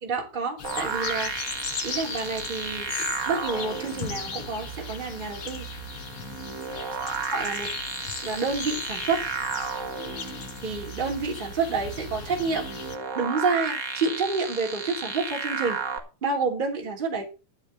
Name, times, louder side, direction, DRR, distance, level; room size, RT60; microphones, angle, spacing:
voice 1, 0.0-1.3 1.8-2.9 3.3-5.7 7.3-7.7 8.2-9.2 10.6-12.6 13.1-15.8 16.2-17.2, right 4 dB, 15° right, 1 dB, 2.7 m, -28 dB
sound 1, 0.6-13.0, left 6 dB, 50° left, 2.0 m, -38 dB
sound 2, 0.6-16.0, right 6 dB, 40° right, 2.0 m, -34 dB
12.0 x 4.7 x 8.2 m, 0.31 s
omnidirectional pair, 3.8 m